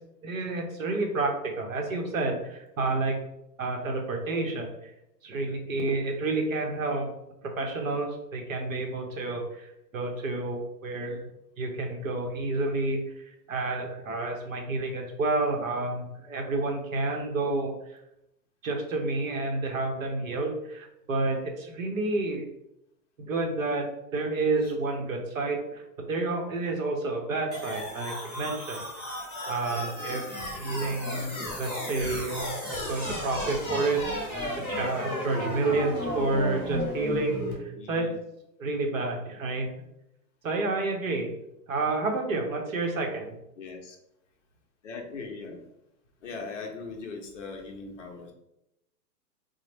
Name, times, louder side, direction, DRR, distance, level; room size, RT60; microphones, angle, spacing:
voice 1, 0.2-3.2 3.6-4.9 5.2-7.1 7.6-11.3 11.6-18.0 18.6-22.5 23.2-23.9 24.1-28.8 29.5-34.3 34.7-38.1 38.6-39.7 40.4-41.4 41.7-43.4, right 3 dB, 55° right, 2 dB, 0.7 m, -30 dB
sound 1, 27.5-37.5, left 1 dB, 10° left, 0.8 m, -34 dB
voice 2, 37.7-38.2 43.6-44.0 44.8-45.6 46.2-48.3, left 4 dB, 45° left, 2 dB, 0.6 m, -40 dB
3.9 x 2.1 x 3.2 m, 0.86 s
hypercardioid pair, 175°, 50 cm